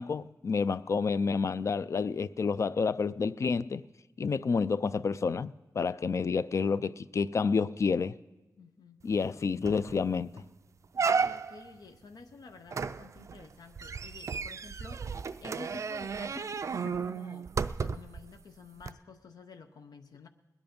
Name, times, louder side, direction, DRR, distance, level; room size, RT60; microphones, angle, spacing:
voice 1, 0.0-3.8 4.2-8.1 9.0-10.4, left 5 dB, 50° left, 0.3 m, -29 dB
voice 2, 8.6-9.0 11.0-15.1 15.4-17.5 17.8-20.3, left 4 dB, 85° left, 0.7 m, -50 dB
sound 1, 9.2-9.3 9.6-10.0 10.4-10.5 10.9-11.7 12.7-18.2 18.8-18.9, right 5 dB, 50° right, 0.4 m, -33 dB
21.0 x 9.3 x 5.2 m
wide cardioid pair, 145°, 7 cm